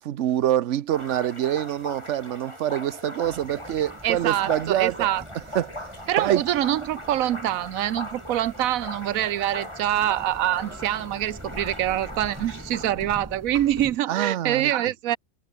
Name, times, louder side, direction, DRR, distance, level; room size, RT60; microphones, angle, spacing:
voice 1, 0.0-5.1 5.5-5.7 6.2-6.4 14.1-14.7, right 11 dB, 65° right, 1.0 m, -25 dB
sound 1, 0.9-12.9, left 1 dB, 20° left, 6.8 m, -40 dB
sound 2, 3.2-14.0, right 1 dB, 10° right, 3.5 m, -44 dB
voice 2, 4.0-5.2 6.1-15.2, right 12 dB, 85° right, 1.2 m, -25 dB
omnidirectional pair, 1.4 m